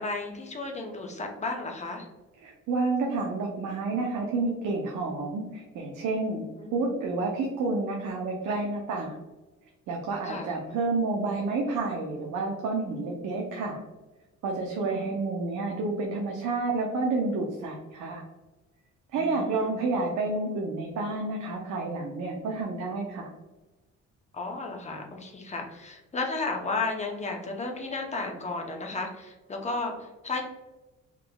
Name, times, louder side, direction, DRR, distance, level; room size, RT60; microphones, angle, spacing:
voice 1, 0.0-2.1 6.6-6.9 10.2-10.5 14.8-15.1 19.2-19.8 24.3-30.4, left 3 dB, 25° left, 2 dB, 0.7 m, -34 dB
voice 2, 2.4-6.5 6.7-9.1 9.9-13.8 14.4-18.2 19.1-23.3, right 3 dB, 75° right, -1 dB, 0.7 m, -29 dB
3.7 x 2.9 x 2.2 m, 1.1 s
cardioid pair, 90°, 30 cm